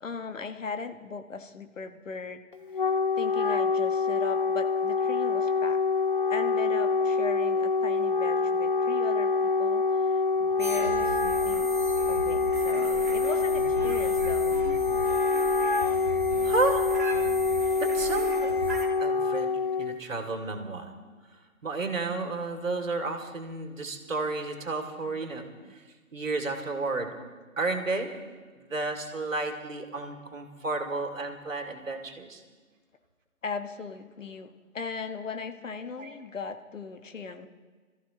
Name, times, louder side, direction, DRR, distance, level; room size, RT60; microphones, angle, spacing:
voice 1, 0.0-2.4 3.2-5.8 6.3-11.7 12.1-14.5 25.1-25.2 25.6-25.7 33.4-37.5, left 4 dB, 65° left, 7 dB, 1.3 m, -38 dB
Wind instrument woodwind instrument, 2.5-20.0, left 4 dB, 40° left, 0.4 m, -26 dB
sound 1, 10.6-18.9, right 2 dB, 10° right, 0.6 m, -37 dB
voice 2, 16.4-16.9 17.8-18.6 19.0-19.5 19.8-20.9 21.6-25.8 26.1-27.2 27.6-28.1 28.6-32.4 36.0-36.1, right 3 dB, 65° right, 4 dB, 2.5 m, -32 dB
27.5 x 14.0 x 2.9 m, 1.5 s
figure-of-eight pair, 145°, 42 cm